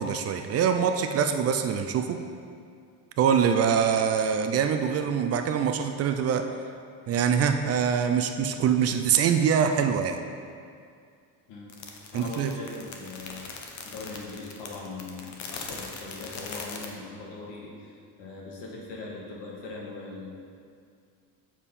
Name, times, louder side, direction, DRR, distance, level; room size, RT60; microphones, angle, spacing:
voice 1, 0.0-2.2 3.2-6.5 7.1-10.2 12.1-12.5, right 7 dB, 40° right, 7 dB, 0.4 m, -24 dB
sound 1, 11.7-16.9, left 5 dB, 45° left, 1.0 m, -40 dB
voice 2, 12.1-20.3, left 3 dB, 85° left, -3 dB, 2.0 m, -40 dB
7.2 x 7.1 x 4.2 m, 2.3 s
cardioid pair, 150°, 40 cm